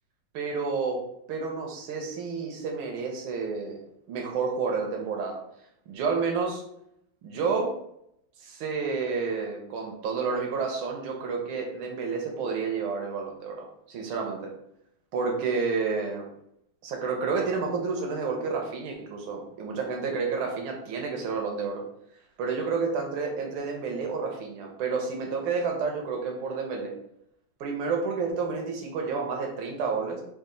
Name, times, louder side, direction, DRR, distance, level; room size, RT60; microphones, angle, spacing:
voice 1, 0.3-1.0 1.3-3.8 4.1-5.4 5.9-6.6 7.2-7.7 8.4-14.5 15.1-16.3 16.8-21.8 22.4-26.9 27.6-30.2, right 5 dB, 80° right, 1 dB, 1.6 m, -30 dB
4.0 x 2.4 x 3.7 m, 0.76 s
omnidirectional pair, 2.2 m